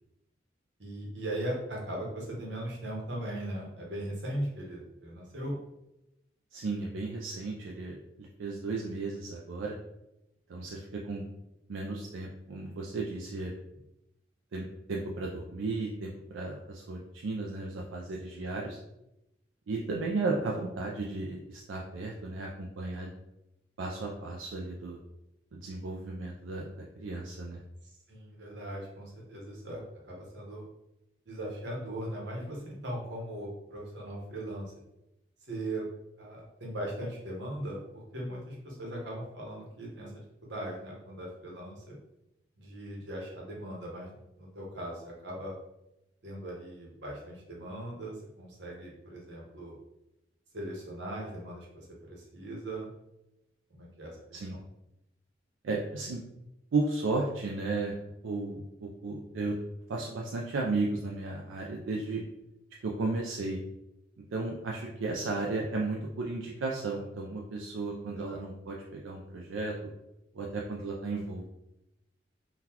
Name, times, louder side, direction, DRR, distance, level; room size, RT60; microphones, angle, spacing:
voice 1, 0.8-5.6 13.4-13.5 28.1-30.7 31.3-34.7 35.5-35.9 36.2-42.0 42.6-44.1 44.4-45.5 46.2-49.8 50.5-52.9 53.7-54.2 54.5-54.6 68.1-68.4, right 1 dB, 65° right, -2 dB, 0.9 m, -39 dB
voice 2, 6.5-9.7 10.5-11.2 11.7-13.5 14.5-18.8 19.7-23.1 23.8-25.0 25.5-27.6 54.3-54.6 55.6-56.2 56.7-57.9 58.2-59.6 59.9-62.2 62.8-63.6 64.3-69.7 70.3-71.4, right 3 dB, 85° right, -1 dB, 0.4 m, -34 dB
3.8 x 2.3 x 2.8 m, 0.88 s
head